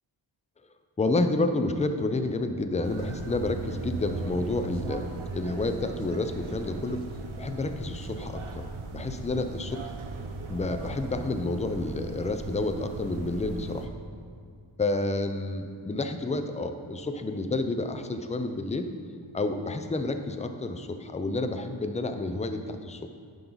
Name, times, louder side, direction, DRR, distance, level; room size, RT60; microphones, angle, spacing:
voice 1, 1.0-7.0 7.4-8.7 8.9-9.9 10.5-13.9 14.8-18.9 19.3-23.0, left 2 dB, 15° left, 8 dB, 0.4 m, -30 dB
sound 1, 2.8-13.9, right 3 dB, 80° right, 0.8 m, -38 dB
10.5 x 5.4 x 3.9 m, 2.2 s
wide cardioid pair, 70°, 49 cm